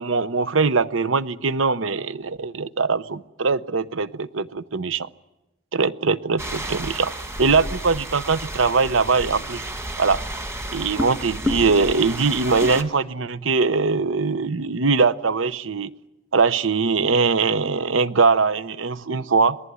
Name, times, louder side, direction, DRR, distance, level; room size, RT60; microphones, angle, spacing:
voice 1, 0.0-5.1 5.7-7.1 7.4-9.7 10.0-10.2 10.7-15.9 16.3-19.6, right 4 dB, 70° right, 16 dB, 0.8 m, -21 dB
sound 1, 6.4-12.8, equal, 15° right, 2.1 m, -31 dB
27.0 x 20.0 x 9.6 m, 1.0 s
head